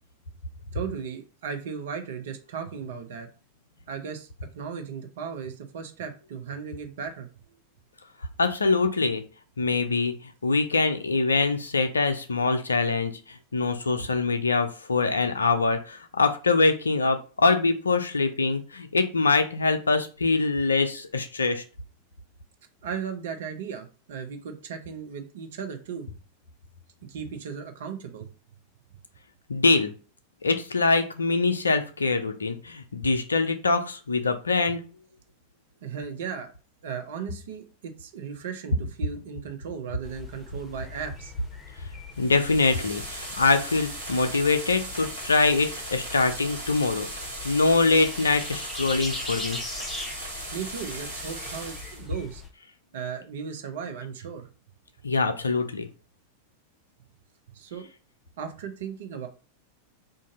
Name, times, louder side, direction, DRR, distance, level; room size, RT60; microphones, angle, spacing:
voice 1, 0.7-3.3 3.9-4.3 4.5-7.6 22.8-26.1 27.1-28.3 35.8-36.5 36.8-41.3 50.5-52.4 52.9-54.5 57.5-57.9 58.4-59.3, right 6 dB, 60° right, 6 dB, 0.6 m, -36 dB
voice 2, 8.4-9.2 9.6-10.1 10.4-21.6 29.5-29.9 30.4-34.8 42.2-47.1 47.4-49.6 55.0-55.9, left 3 dB, 75° left, 8 dB, 0.4 m, -24 dB
sound 1, 40.0-52.5, left 3 dB, 15° left, 0.9 m, -41 dB
sound 2, 42.1-52.0, right 1 dB, 75° right, 1.3 m, -37 dB
2.6 x 2.5 x 3.8 m, 0.36 s
figure-of-eight pair, 90°, 0 cm